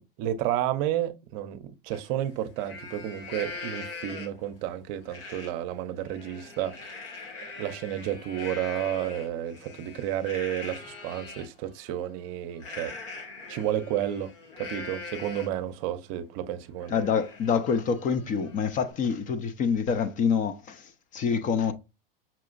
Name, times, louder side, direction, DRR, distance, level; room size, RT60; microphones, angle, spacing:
voice 1, 0.2-6.7 7.6-12.9 13.5-14.3 14.6-17.0, right 11 dB, 45° right, 0.7 m, -31 dB
Livestock farm animals working animals, 1.9-2.0 2.4-4.5 5.1-5.5 5.9-11.5 12.6-15.7 16.1-16.2 16.5-18.9, left 4 dB, 80° left, 1.6 m, -42 dB
voice 2, 16.9-21.7, left 6 dB, 25° left, 0.5 m, -26 dB
5.8 x 2.8 x 2.5 m
hypercardioid pair, 125°, 29 cm